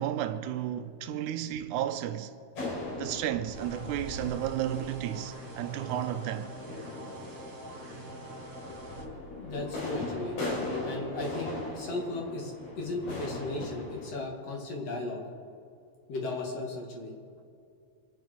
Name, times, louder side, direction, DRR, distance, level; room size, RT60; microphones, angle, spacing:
voice 1, 0.0-2.3 3.0-6.5, right 11 dB, 85° right, 2.1 m, -33 dB
sound 1, 2.5-14.2, left 2 dB, 75° left, 5.1 m, -39 dB
sound 2, 3.5-9.0, right 2 dB, 40° right, 3.2 m, -46 dB
voice 2, 9.4-10.4 10.8-15.2 16.1-17.1, left 2 dB, 55° left, 3.1 m, -36 dB
26.0 x 9.4 x 4.6 m
omnidirectional pair, 3.5 m